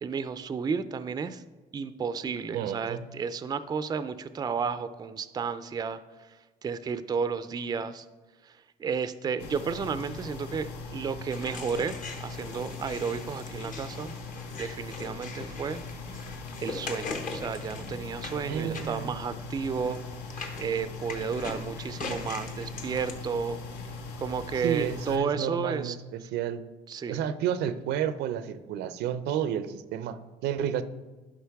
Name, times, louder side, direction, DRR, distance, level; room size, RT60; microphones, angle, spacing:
voice 1, 0.0-1.4 1.7-6.0 6.6-8.0 8.8-14.1 14.5-15.8 16.1-16.2 16.6-20.0 20.6-23.6 24.2-26.0 26.9-27.2, right 6 dB, 25° right, 13 dB, 0.4 m, -32 dB
voice 2, 2.5-3.1 18.5-19.2 24.6-26.6 27.1-30.8, right 9 dB, 80° right, 12 dB, 0.5 m, -31 dB
sound 1, 9.4-25.2, left 3 dB, 80° left, 1.1 m, -40 dB
sound 2, 11.3-23.1, left 4 dB, 50° left, 1.1 m, -41 dB
11.5 x 5.1 x 3.4 m, 1.3 s
cardioid pair, 110°, 17 cm